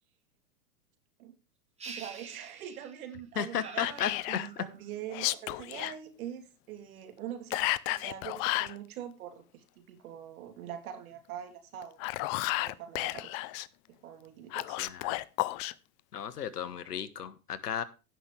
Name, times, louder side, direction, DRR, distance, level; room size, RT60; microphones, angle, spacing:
sound 1, 1.8-3.1 3.6-4.8, right 4 dB, 15° right, 2.8 m, -47 dB
voice 1, 1.8-12.0 12.6-13.4 14.0-14.8, right 10 dB, 65° right, 6 dB, 3.0 m, -43 dB
voice 2, 3.4-4.1 4.6-4.7 14.8-15.2 16.1-17.8, left 8 dB, 90° left, 15 dB, 1.3 m, -34 dB
Whispering, 3.8-4.5 5.1-6.0 7.5-8.8 11.8-13.7 14.5-15.7, left 18 dB, 35° left, 0.5 m, -32 dB
17.0 x 6.0 x 3.2 m, 0.31 s
hypercardioid pair, 110°, 45 cm